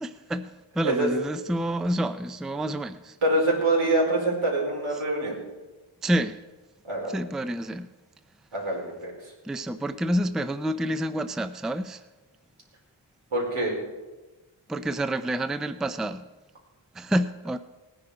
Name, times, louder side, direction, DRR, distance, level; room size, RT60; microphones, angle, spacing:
voice 1, 0.0-3.2 6.0-6.4 7.1-7.9 9.4-12.0 14.7-16.2 16.9-17.6, right 1 dB, ahead, 11 dB, 0.4 m, -28 dB
voice 2, 3.2-5.4 6.8-7.1 8.5-9.1 13.3-13.7, right 2 dB, 85° right, -2 dB, 4.7 m, -25 dB
18.5 x 10.0 x 5.0 m, 1.2 s
wide cardioid pair, 110°, 49 cm